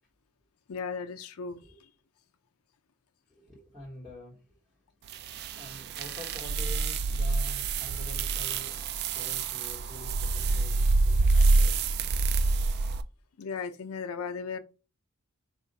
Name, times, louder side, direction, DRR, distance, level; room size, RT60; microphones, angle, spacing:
voice 1, 0.7-1.6 13.4-14.6, left 5 dB, 80° left, 0.5 m, -36 dB
voice 2, 3.3-4.6 5.5-12.1, left 1 dB, ahead, 1.2 m, -47 dB
sound 1, 5.1-13.0, right 3 dB, 50° right, 0.3 m, -27 dB
4.3 x 2.4 x 3.9 m
head